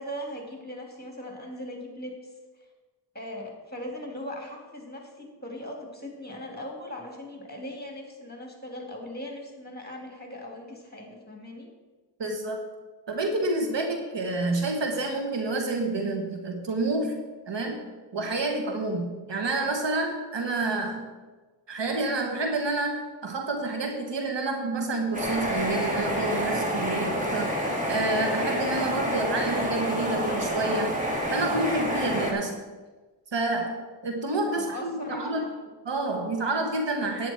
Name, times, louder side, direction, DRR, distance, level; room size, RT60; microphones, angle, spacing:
voice 1, 0.0-2.1 3.1-11.7 34.5-35.6, left 1 dB, 20° left, 1 dB, 2.8 m, -39 dB
voice 2, 12.2-12.6 13.1-17.8 18.1-21.1 21.7-27.5 27.9-30.9 31.3-32.6 33.3-35.5 35.8-37.3, right 2 dB, 90° right, 3 dB, 1.2 m, -29 dB
sound 1, 25.1-32.3, equal, 20° right, 2.5 m, -28 dB
10.5 x 9.0 x 4.4 m, 1.3 s
wide cardioid pair, 55°, 42 cm